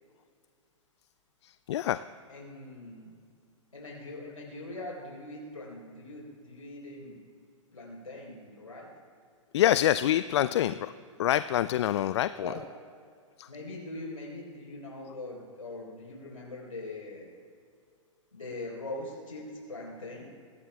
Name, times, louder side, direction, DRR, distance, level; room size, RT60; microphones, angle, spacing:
voice 1, 1.4-2.0 9.5-10.9 11.2-12.5 13.4-13.5, left 12 dB, 55° left, 14 dB, 0.4 m, -26 dB
voice 2, 2.3-3.1 3.7-7.2 7.7-8.9 12.4-12.6 13.5-17.3 18.3-20.3, left 2 dB, 90° left, -4 dB, 4.4 m, -42 dB
25.0 x 18.0 x 2.4 m, 2.2 s
figure-of-eight pair, 115°, 17 cm